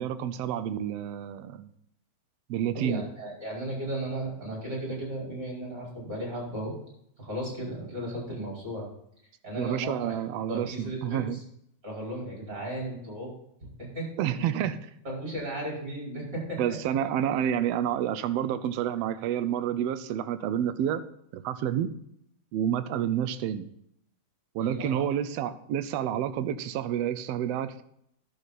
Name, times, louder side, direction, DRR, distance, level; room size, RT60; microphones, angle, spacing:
voice 1, 0.0-1.7 2.5-3.0 9.6-11.4 14.2-14.8 16.6-21.0 21.3-21.9 22.5-23.7 24.5-27.8, right 10 dB, 80° right, 12 dB, 1.5 m, -29 dB
voice 2, 2.7-6.7 7.2-8.9 9.4-10.1 10.5-11.4 11.8-13.3 13.9-14.1 15.1-16.8 24.6-24.9, right 1 dB, 30° right, -4 dB, 5.4 m, -35 dB
12.0 x 7.2 x 4.1 m, 0.73 s
omnidirectional pair, 3.4 m